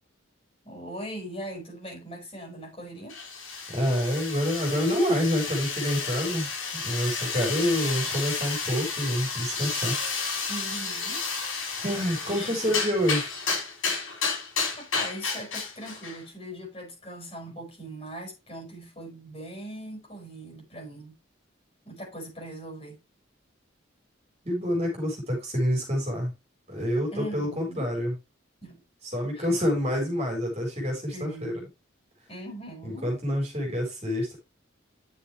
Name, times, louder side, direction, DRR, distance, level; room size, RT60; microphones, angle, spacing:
voice 1, 0.6-3.2 7.6-8.1 10.5-11.2 12.3-12.8 14.8-21.1 21.8-23.0 27.1-27.9 28.6-28.8 29.4-29.5 31.1-31.7 32.3-33.1, right 1 dB, 30° left, 6.2 m, -40 dB
sound 1, 3.1-16.2, left 5 dB, 90° left, 6.3 m, -32 dB
voice 2, 3.7-9.9 11.7-13.3 24.4-26.3 26.7-28.1 29.1-31.5 32.8-34.4, equal, 30° right, 4.0 m, -27 dB
10.0 x 6.9 x 3.2 m
head